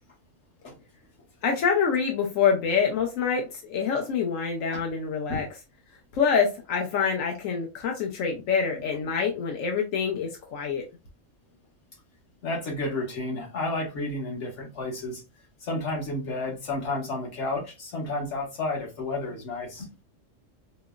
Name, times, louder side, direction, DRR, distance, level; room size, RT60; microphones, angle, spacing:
voice 1, 1.4-5.5 6.1-10.8, left 6 dB, 90° left, 1.1 m, -26 dB
voice 2, 12.4-15.2 15.6-19.9, left 2 dB, 65° left, 1.5 m, -31 dB
5.1 x 2.0 x 2.3 m
omnidirectional pair, 1.3 m